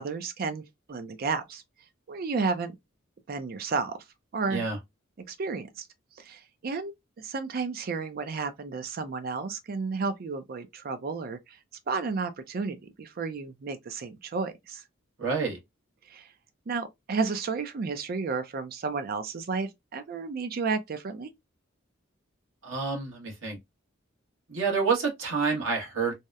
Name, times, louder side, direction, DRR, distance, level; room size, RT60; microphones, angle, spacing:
voice 1, 0.0-1.6 2.1-2.8 3.3-4.0 4.3-4.6 5.2-5.8 6.2-11.6 11.9-14.8 16.1-16.3 16.7-21.3, right 4 dB, 50° right, 0.4 m, -32 dB
voice 2, 15.2-15.6 22.6-23.6 24.5-26.1, right 5 dB, 75° right, 1.1 m, -28 dB
2.8 x 2.0 x 2.3 m
head